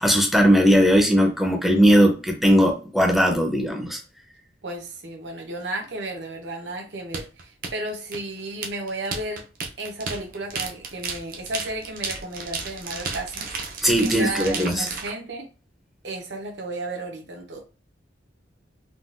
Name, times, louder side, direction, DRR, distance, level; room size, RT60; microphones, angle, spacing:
voice 1, 0.0-4.0 13.8-14.9, equal, ahead, 0.6 m, -18 dB
voice 2, 4.6-9.4 9.8-15.5 16.0-17.6, right 2 dB, 75° right, 0.9 m, -33 dB
sound 1, 7.1-15.1, right 4 dB, 50° right, 0.6 m, -33 dB
3.7 x 2.3 x 2.5 m
head